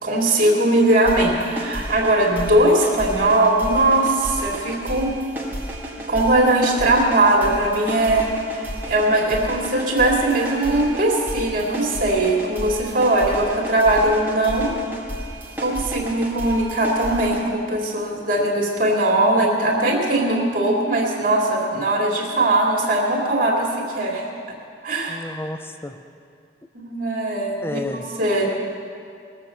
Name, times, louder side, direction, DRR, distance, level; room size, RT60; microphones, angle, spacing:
voice 1, 0.0-5.1 6.1-14.7 15.6-24.3 24.8-25.3 26.7-28.5, right 1 dB, 45° right, -2 dB, 2.6 m, -20 dB
sound 1, 0.9-17.4, right 1 dB, 10° right, 1.7 m, -33 dB
voice 2, 25.1-26.0 27.6-28.0 28.3-28.5, left 1 dB, 15° left, 8 dB, 0.5 m, -31 dB
20.5 x 7.5 x 6.7 m, 2.4 s
head